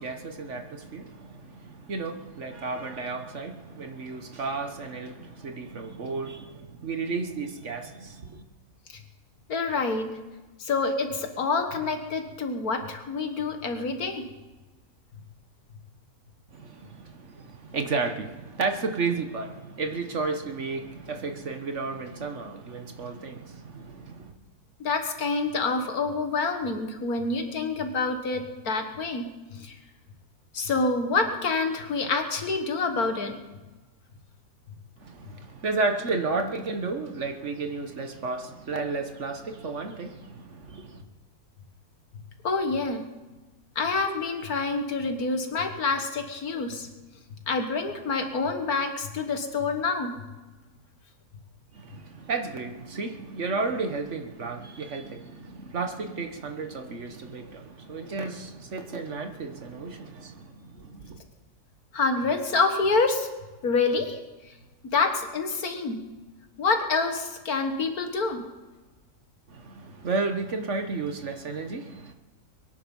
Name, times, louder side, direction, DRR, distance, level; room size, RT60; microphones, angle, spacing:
voice 1, 0.0-8.4 16.5-24.3 35.0-41.0 51.7-61.2 69.5-72.1, right 4 dB, 50° right, 6 dB, 1.4 m, -33 dB
voice 2, 9.5-10.1 10.6-14.2 24.8-29.8 30.5-33.4 42.4-43.0 43.8-46.9 47.5-50.2 61.9-63.3 63.6-64.2 64.5-64.6 64.9-66.0 66.6-68.5, left 4 dB, 70° left, 6 dB, 2.0 m, -27 dB
22.5 x 10.5 x 5.4 m, 1.2 s
omnidirectional pair, 1.7 m